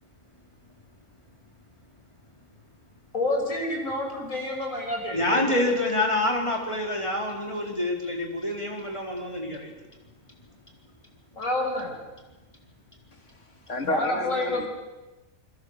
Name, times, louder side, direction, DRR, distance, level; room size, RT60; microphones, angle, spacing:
voice 1, 3.1-5.6 11.3-11.9 13.8-14.7, left 1 dB, 90° left, 1 dB, 5.8 m, -28 dB
voice 2, 5.1-9.7, left 1 dB, 20° left, 0 dB, 4.0 m, -27 dB
voice 3, 13.1-14.7, left 2 dB, 65° left, 5 dB, 2.2 m, -32 dB
28.0 x 21.0 x 6.6 m, 1.1 s
omnidirectional pair, 1.4 m